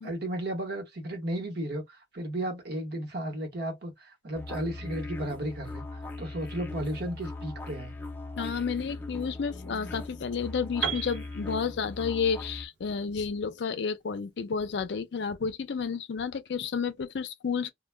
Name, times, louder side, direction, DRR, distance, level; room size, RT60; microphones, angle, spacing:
voice 1, 0.0-5.8 6.2-7.9, right 1 dB, 60° right, 1.0 m, -34 dB
sound 1, 4.3-12.7, left 2 dB, 10° left, 0.4 m, -40 dB
voice 2, 8.4-17.7, left 6 dB, 65° left, 0.4 m, -31 dB
Piano, 10.8-14.7, right 7 dB, 80° right, 0.5 m, -38 dB
2.1 x 2.1 x 3.2 m
head